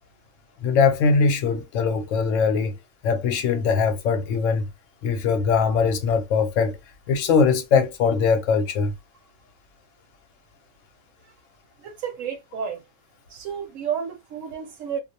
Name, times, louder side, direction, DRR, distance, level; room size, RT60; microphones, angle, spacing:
voice 1, 0.6-2.8 3.0-4.7 5.0-6.8 7.1-8.9, left 5 dB, 70° left, 0.9 m, -21 dB
voice 2, 11.8-12.8 13.3-15.0, right 7 dB, 70° right, 1.0 m, -31 dB
2.4 x 2.0 x 2.7 m
omnidirectional pair, 1.5 m